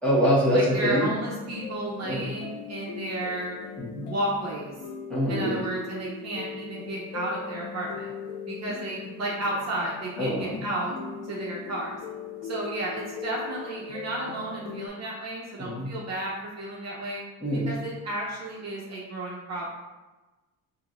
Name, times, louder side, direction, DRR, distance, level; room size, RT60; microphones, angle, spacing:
voice 1, 0.0-1.1 2.0-2.3 3.8-4.1 5.1-5.6 10.2-10.6 15.6-15.9 17.4-17.7, equal, 5° left, -9 dB, 1.3 m, -25 dB
voice 2, 0.5-3.6 4.0-4.7 5.3-8.1 8.5-10.9 11.3-12.0 12.4-17.2 17.5-19.7, right 1 dB, 45° right, -4 dB, 0.8 m, -32 dB
sound 1, 0.7-14.9, left 5 dB, 85° left, 0.6 m, -40 dB
5.1 x 2.7 x 2.5 m, 1.2 s
cardioid pair, 125°, 37 cm